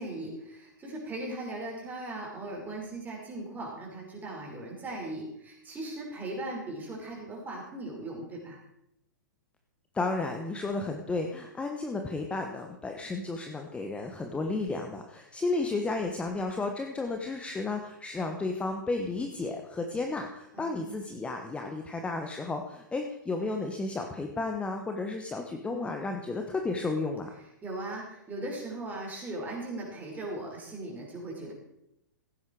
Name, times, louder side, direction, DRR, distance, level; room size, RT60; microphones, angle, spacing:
voice 1, 0.0-8.6 20.5-21.2 25.7-25.9 27.6-31.5, right 2 dB, 15° right, -2 dB, 5.5 m, -38 dB
voice 2, 9.9-27.3, left 3 dB, 10° left, 4 dB, 1.2 m, -33 dB
16.0 x 9.3 x 4.8 m, 0.81 s
figure-of-eight pair, 110°, 10 cm